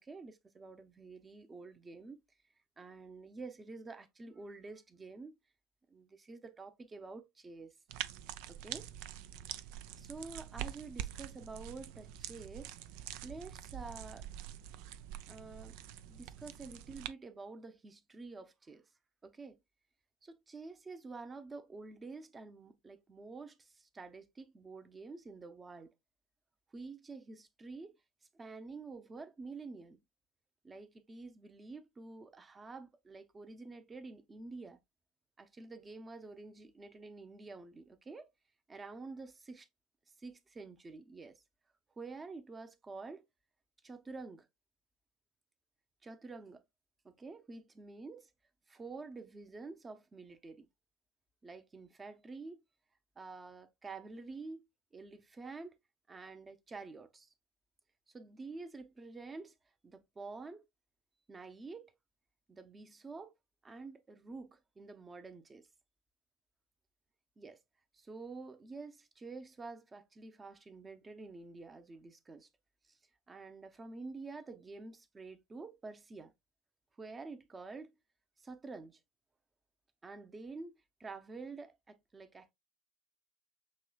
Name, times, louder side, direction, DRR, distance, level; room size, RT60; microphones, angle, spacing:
voice 1, 0.0-2.2 2.8-5.4 5.9-7.7 8.5-8.9 10.0-12.7 13.2-14.2 15.3-15.8 16.1-18.8 19.2-19.6 20.2-25.9 26.7-28.0 28.3-30.0 30.6-34.8 35.4-38.3 38.7-39.7 40.2-41.4 42.0-43.3 43.8-44.5 46.0-46.6 47.0-48.3 48.7-50.7 51.4-52.6 53.2-54.6 54.9-55.8 56.1-57.3 58.1-59.5 59.8-60.6 61.3-61.9 62.5-63.3 63.6-65.7 67.4-67.6 67.9-72.5 73.3-76.3 77.0-77.9 78.4-79.0 80.0-80.7 81.0-82.5, right 3 dB, 20° right, 0.8 m, -48 dB
sound 1, 7.9-17.1, right 11 dB, 60° right, 0.4 m, -45 dB
6.3 x 3.0 x 2.4 m
figure-of-eight pair, 75°, 0 cm